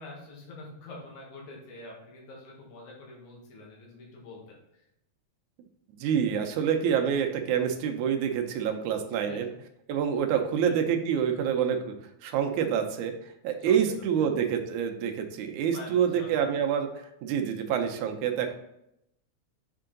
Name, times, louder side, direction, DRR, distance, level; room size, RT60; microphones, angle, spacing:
voice 1, 0.0-4.8 9.1-9.6 10.3-10.8 13.6-13.8 14.2-14.3 15.7-16.5, left 2 dB, 75° left, -2 dB, 2.9 m, -46 dB
voice 2, 6.0-9.5 9.9-11.9 12.2-13.1 13.4-16.9 17.2-18.5, right 8 dB, 85° right, 5 dB, 2.2 m, -27 dB
6.7 x 4.6 x 3.8 m, 0.80 s
omnidirectional pair, 3.4 m